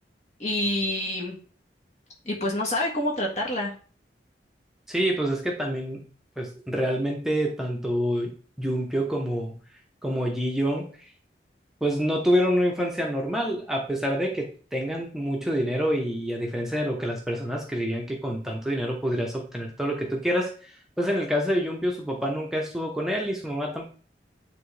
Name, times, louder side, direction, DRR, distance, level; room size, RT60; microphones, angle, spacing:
voice 1, 0.4-1.4 2.2-3.7, left 1 dB, 40° left, -1 dB, 1.6 m, -27 dB
voice 2, 4.9-6.1 6.4-9.6 10.0-11.1 11.8-23.8, equal, 5° right, -1 dB, 0.9 m, -27 dB
9.3 x 3.6 x 3.4 m, 0.40 s
head